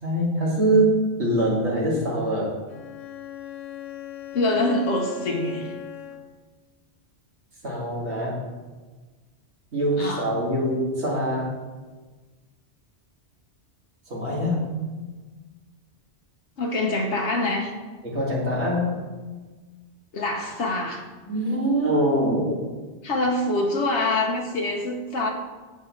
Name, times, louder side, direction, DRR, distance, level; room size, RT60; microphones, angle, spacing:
voice 1, 0.0-2.6 7.6-8.4 9.7-11.5 14.1-14.7 18.0-19.0 21.3-22.7, right 1 dB, 75° right, -4 dB, 2.4 m, -23 dB
Bowed string instrument, 2.7-6.5, left 12 dB, 50° left, 0.6 m, -39 dB
voice 2, 4.3-5.7 10.0-10.3 16.6-17.7 20.1-21.0 23.0-25.3, left 2 dB, 80° left, 2 dB, 1.1 m, -25 dB
10.0 x 7.8 x 3.1 m, 1.3 s
omnidirectional pair, 1.1 m